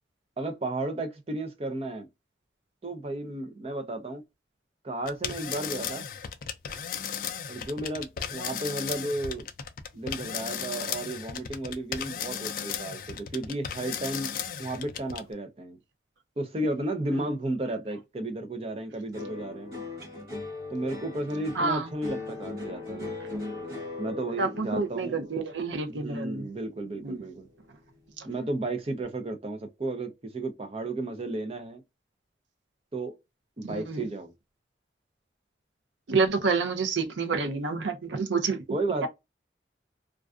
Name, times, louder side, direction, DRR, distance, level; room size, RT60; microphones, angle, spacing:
voice 1, 0.4-2.1 2.8-4.2 4.8-6.1 7.5-9.5 9.9-15.8 16.4-19.7 20.7-23.1 24.0-25.2 25.9-27.5 28.2-31.8 32.9-33.1 33.6-34.3 38.7-39.1, right 2 dB, 30° right, 0.5 m, -33 dB
sound 1, 5.0-15.3, left 8 dB, 50° left, 0.3 m, -35 dB
sound 2, 19.1-27.6 27.9-28.5, left 3 dB, 60° right, 1.0 m, -39 dB
voice 2, 21.6-21.9 24.4-26.4 27.0-27.2 28.2-28.3 33.6-34.0 36.1-38.6, right 4 dB, 85° right, 0.6 m, -28 dB
2.4 x 2.3 x 2.3 m
head